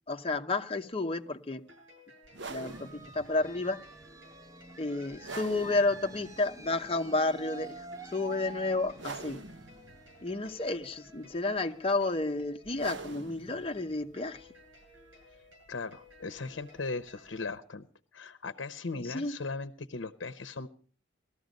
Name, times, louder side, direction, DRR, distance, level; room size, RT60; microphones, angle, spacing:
voice 1, 0.1-1.6 2.5-3.8 4.8-9.4 10.2-14.5 18.9-19.4, left 2 dB, 30° left, 0.9 m, -31 dB
sound 1, 1.6-17.4, left 1 dB, 90° right, 7.3 m, -58 dB
sound 2, 2.2-17.6, right 3 dB, 70° right, 0.9 m, -48 dB
sound 3, 2.5-12.0, right 2 dB, 15° right, 0.7 m, -49 dB
voice 2, 15.7-17.9 18.1-20.7, left 3 dB, 80° left, 0.8 m, -38 dB
19.0 x 14.0 x 5.3 m
head